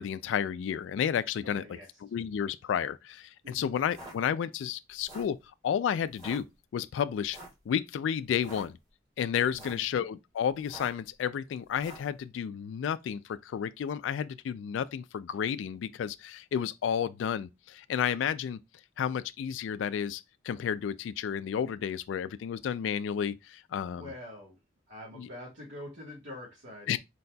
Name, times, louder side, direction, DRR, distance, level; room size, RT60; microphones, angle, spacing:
voice 1, 0.0-5.4 5.6-6.5 6.7-7.4 7.7-8.8 9.2-18.6 19.0-24.1 25.2-25.3 26.9-27.0, left 8 dB, 85° left, 0.3 m, -31 dB
voice 2, 1.5-1.9 3.4-3.7 9.5-9.8 23.9-24.5 24.9-27.0, left 1 dB, 75° right, 1.4 m, -45 dB
sound 1, 3.8-4.2 4.9-5.4 6.1-6.4 7.3-7.6 8.3-8.7 9.4-9.9 10.6-11.0 11.7-12.1, right 1 dB, 40° right, 2.0 m, -46 dB
4.5 x 4.0 x 2.2 m
head